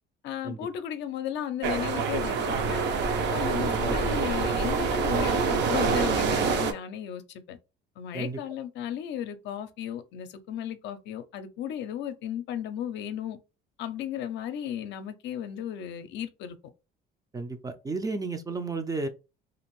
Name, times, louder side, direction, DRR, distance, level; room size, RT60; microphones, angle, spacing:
voice 1, 0.2-2.9 3.3-7.6 8.0-13.4 13.8-16.6, left 10 dB, 60° left, 0.5 m, -35 dB
sound 1, 1.6-6.7, right 5 dB, 60° right, 0.6 m, -26 dB
voice 2, 3.7-4.1 8.1-8.4 17.3-19.1, right 3 dB, 20° right, 0.4 m, -33 dB
2.5 x 2.5 x 3.0 m
supercardioid pair, 95°, 20 cm